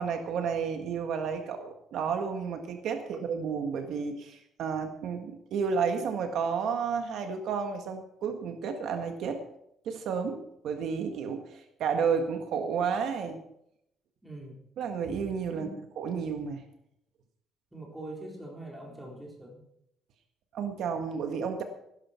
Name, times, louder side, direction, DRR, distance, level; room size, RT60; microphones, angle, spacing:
voice 1, 0.0-9.4 9.8-13.4 14.8-15.7 16.0-16.6 20.5-21.6, right 6 dB, 65° right, 5 dB, 1.6 m, -31 dB
voice 2, 14.2-14.6 15.5-15.9 17.7-19.6, right 1 dB, 5° right, -1 dB, 4.1 m, -43 dB
17.5 x 12.0 x 4.5 m, 0.76 s
cardioid pair, 150°, 0 cm